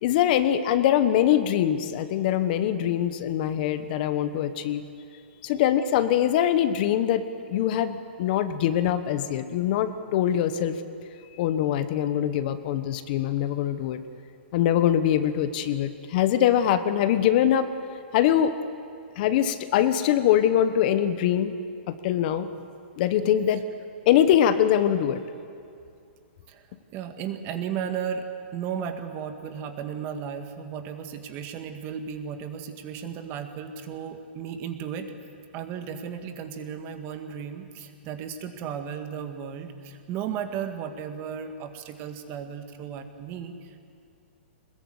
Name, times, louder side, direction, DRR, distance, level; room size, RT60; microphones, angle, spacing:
voice 1, 0.0-4.8 5.4-10.8 11.4-14.0 14.5-17.7 18.1-18.5 19.2-21.5 21.9-22.5 23.0-23.6 24.1-25.2, left 10 dB, 50° left, 11 dB, 1.2 m, -23 dB
voice 2, 26.9-28.3 28.5-35.1 35.5-43.8, right 8 dB, 35° right, 6 dB, 2.0 m, -35 dB
22.0 x 21.0 x 8.0 m, 2.4 s
hypercardioid pair, 140°, 6 cm